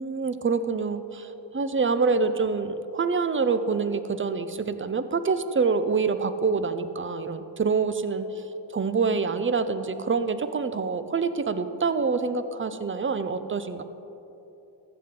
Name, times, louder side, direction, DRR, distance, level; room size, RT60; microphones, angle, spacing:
voice 1, 0.0-8.4 8.7-13.8, right 4 dB, 25° right, 11 dB, 0.6 m, -26 dB
14.5 x 7.7 x 3.8 m, 2.9 s
cardioid pair, 45°, 47 cm